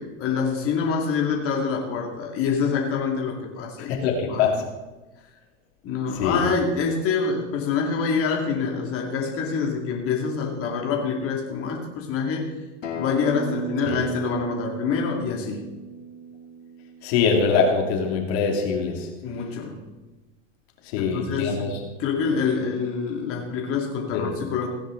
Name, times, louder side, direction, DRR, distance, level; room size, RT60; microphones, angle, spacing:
voice 1, 0.0-4.0 4.3-4.6 5.8-12.5 12.9-15.7 19.2-19.8 20.9-21.7 22.0-24.7, left 5 dB, 35° left, 0 dB, 2.5 m, -26 dB
voice 2, 3.9-4.6 6.2-6.4 13.8-14.0 17.0-19.1 20.9-21.7 24.1-24.3, left 5 dB, 55° left, 2 dB, 2.7 m, -23 dB
Acoustic guitar, 12.8-18.0, right 3 dB, 85° left, 2.4 m, -35 dB
17.0 x 9.9 x 3.9 m, 1.2 s
hypercardioid pair, 115°, 37 cm